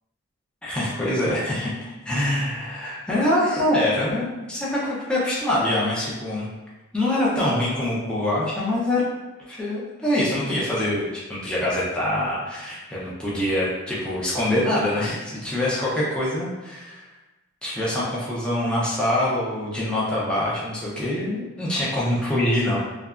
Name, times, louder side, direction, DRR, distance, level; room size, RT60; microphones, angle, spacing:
voice 1, 0.6-6.5 6.9-9.0 9.5-17.1 17.6-22.8, left 1 dB, 5° left, -8 dB, 0.5 m, -24 dB
2.8 x 2.2 x 2.4 m, 1.1 s
head